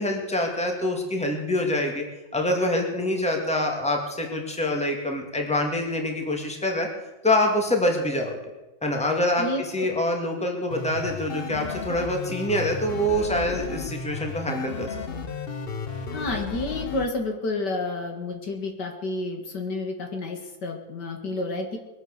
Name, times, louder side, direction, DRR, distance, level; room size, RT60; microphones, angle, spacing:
voice 1, 0.0-2.0 2.3-6.9 7.2-8.4 8.8-9.5 9.7-14.9, left 1 dB, 5° left, 2 dB, 2.1 m, -25 dB
sound 1, 10.7-17.1, left 5 dB, 40° left, 1.0 m, -34 dB
voice 2, 16.1-21.8, left 2 dB, 70° left, 3 dB, 2.5 m, -30 dB
22.0 x 8.2 x 6.7 m, 1.1 s
omnidirectional pair, 1.9 m